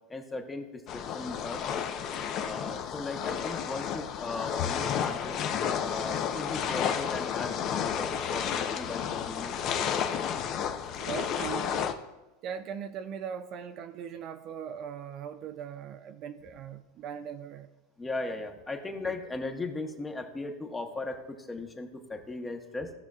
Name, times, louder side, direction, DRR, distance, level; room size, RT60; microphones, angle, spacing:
voice 1, 0.1-1.8 2.4-5.4 5.8-10.2 18.0-22.9, left 2 dB, 10° left, 4 dB, 1.0 m, -38 dB
sound 1, 0.9-11.9, left 8 dB, 40° left, 0.7 m, -31 dB
voice 2, 11.0-12.0 12.4-17.7, right 8 dB, 40° right, 9 dB, 0.5 m, -40 dB
16.5 x 6.2 x 2.4 m, 1.1 s
supercardioid pair, 140°, 0 cm